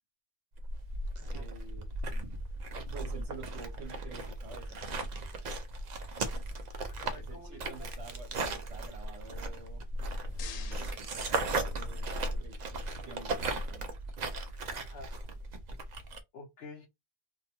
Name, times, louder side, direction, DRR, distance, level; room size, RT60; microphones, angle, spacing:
sound 1, 0.6-16.2, right 2 dB, 80° right, 0.3 m, -37 dB
voice 1, 1.2-2.4 2.9-4.8 7.2-9.8 10.4-13.8, right 4 dB, 65° right, 1.0 m, -49 dB
voice 2, 6.8-7.9 14.7-15.1 16.3-16.9, left 3 dB, 60° left, 0.8 m, -49 dB
sound 2, 9.9-12.1, left 8 dB, 90° left, 1.0 m, -50 dB
2.5 x 2.2 x 2.8 m
omnidirectional pair, 1.3 m